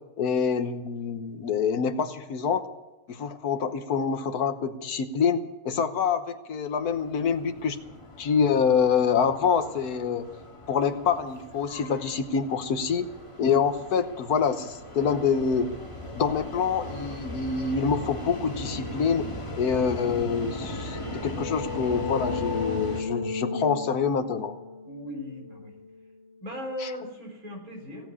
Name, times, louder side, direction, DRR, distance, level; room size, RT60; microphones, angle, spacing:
voice 1, 0.2-2.6 3.1-5.4 5.6-7.8 8.2-10.3 10.7-13.0 13.4-15.7 16.2-19.2 19.6-24.5 26.8-26.9, left 6 dB, 65° left, 9 dB, 1.5 m, -26 dB
sound 1, 6.8-23.0, left 1 dB, 15° left, 1.9 m, -38 dB
sound 2, 20.8-26.3, left 4 dB, 35° left, 2.1 m, -35 dB
voice 2, 24.9-25.7 26.4-28.1, equal, 55° right, 0 dB, 4.2 m, -38 dB
17.0 x 8.2 x 9.6 m, 1.1 s
omnidirectional pair, 1.9 m